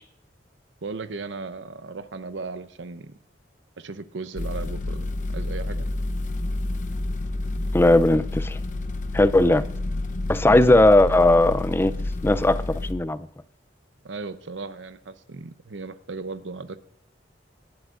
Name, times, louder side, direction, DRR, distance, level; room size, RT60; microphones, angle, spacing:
voice 1, 0.8-3.1 3.8-5.9 14.0-16.8, right 4 dB, 85° right, 0.7 m, -36 dB
sound 1, 4.4-12.9, left 2 dB, 45° left, 0.7 m, -29 dB
voice 2, 7.7-8.6 9.1-9.6 10.3-11.9 12.2-13.3, left 1 dB, 15° left, 0.4 m, -18 dB
19.0 x 11.5 x 2.5 m
head